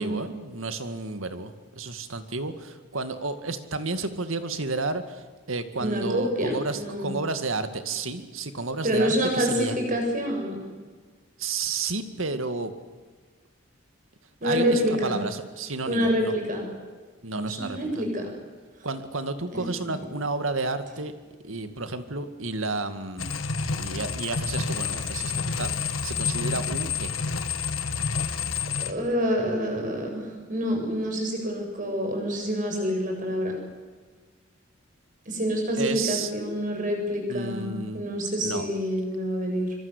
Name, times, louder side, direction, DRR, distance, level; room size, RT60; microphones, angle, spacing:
voice 1, 0.0-9.8 11.4-12.7 14.4-16.3 17.2-18.0 18.8-21.2 21.4-23.3 23.8-27.1 35.8-36.3 37.3-38.0 38.4-38.7, right 3 dB, 80° right, 9 dB, 2.2 m, -31 dB
voice 2, 5.8-7.1 8.8-10.6 14.4-15.2 15.9-16.7 17.3-18.3 19.5-19.7 28.8-33.5 35.3-39.7, equal, 40° right, 2 dB, 7.7 m, -27 dB
sound 1, 23.2-28.9, left 5 dB, 90° left, 1.9 m, -29 dB
24.5 x 24.5 x 8.3 m, 1.4 s
head